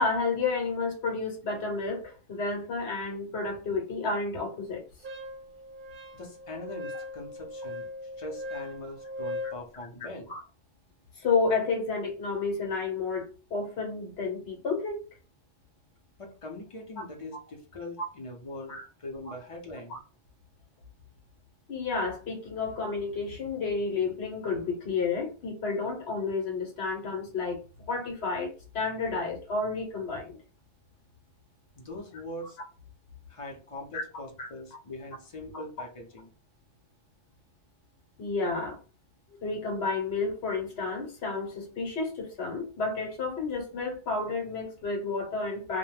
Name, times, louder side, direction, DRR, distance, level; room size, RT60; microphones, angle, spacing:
voice 1, 0.0-4.8 10.3-10.4 11.2-15.0 18.7-18.8 19.9-20.0 21.7-27.6 27.9-30.4 33.9-34.0 34.4-34.5 38.2-38.8 39.4-45.8, left 4 dB, 65° left, 1 dB, 1.0 m, -31 dB
Wind instrument woodwind instrument, 5.0-9.6, left 1 dB, 55° right, 0.7 m, -39 dB
voice 2, 6.1-7.9 8.2-10.3 16.2-20.0 31.8-32.6 33.3-36.3, left 1 dB, 35° left, 1 dB, 0.6 m, -42 dB
2.2 x 2.1 x 3.2 m, 0.35 s
omnidirectional pair, 1.2 m